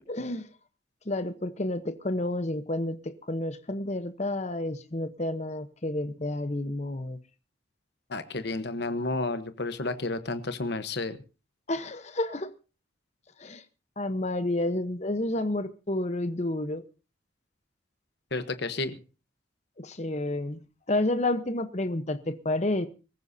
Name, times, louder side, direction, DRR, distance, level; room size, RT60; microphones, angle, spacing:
voice 1, 0.1-0.5 1.1-7.2 11.7-12.5 13.4-13.6 14.0-16.8 19.8-20.6 20.9-22.9, left 1 dB, 35° left, 11 dB, 0.9 m, -30 dB
voice 2, 8.1-11.2 18.3-19.0, left 2 dB, 55° left, 10 dB, 1.1 m, -31 dB
23.0 x 14.5 x 2.7 m, 0.32 s
head